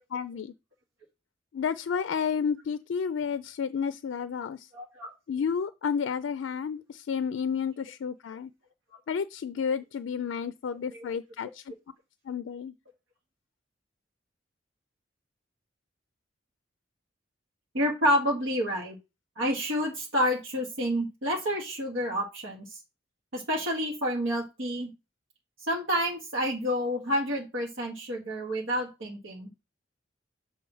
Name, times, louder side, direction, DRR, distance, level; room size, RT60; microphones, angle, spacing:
voice 1, 0.1-0.5 1.5-4.7 5.3-8.5 9.1-11.7 12.2-12.7, left 6 dB, 85° left, 0.4 m, -31 dB
voice 2, 4.7-5.1 17.7-19.0 19.4-22.8 23.3-24.9 25.7-29.5, equal, 85° right, 1.5 m, -29 dB
7.0 x 3.4 x 5.4 m
head